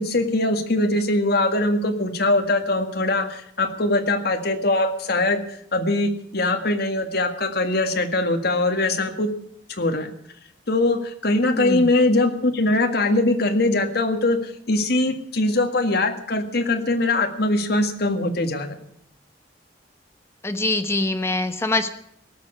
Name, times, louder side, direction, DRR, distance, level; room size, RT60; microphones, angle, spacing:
voice 1, 0.0-9.3 9.7-10.1 10.7-18.7, left 2 dB, 60° left, 6 dB, 1.8 m, -22 dB
voice 2, 11.4-11.9 20.4-21.9, left 2 dB, 15° left, 7 dB, 1.1 m, -24 dB
18.5 x 7.1 x 9.8 m, 0.72 s
head